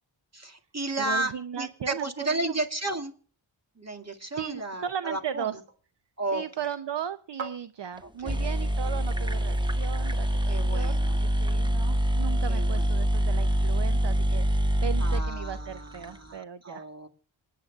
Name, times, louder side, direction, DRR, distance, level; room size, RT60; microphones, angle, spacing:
voice 1, 0.3-3.1 3.8-5.6 6.2-6.4 8.0-8.4 10.5-11.2 12.5-12.9 15.0-17.1, right 2 dB, 35° right, 3 dB, 2.1 m, -33 dB
voice 2, 1.0-2.6 4.3-5.5 6.3-10.9 11.2-16.8, right 9 dB, 60° right, 12 dB, 0.7 m, -36 dB
sound 1, 5.3-10.2, right 5 dB, 75° right, 1.7 m, -48 dB
sound 2, 8.0-8.1 8.3-16.1, right 1 dB, 10° right, 0.8 m, -25 dB
27.0 x 9.4 x 2.3 m, 0.42 s
cardioid pair, 45°, 47 cm